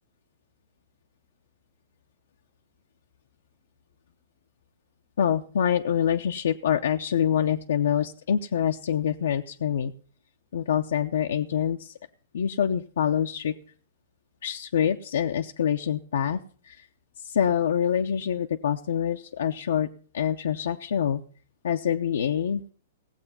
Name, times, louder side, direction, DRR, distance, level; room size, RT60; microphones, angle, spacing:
voice 1, 5.2-9.9 10.5-11.9 12.3-13.5 14.4-16.4 16.6-16.9 17.2-19.9 20.1-21.2 21.6-22.6, left 8 dB, 75° left, 4 dB, 0.7 m, -25 dB
17.0 x 7.9 x 5.6 m, 0.43 s
hypercardioid pair, 135°, 0 cm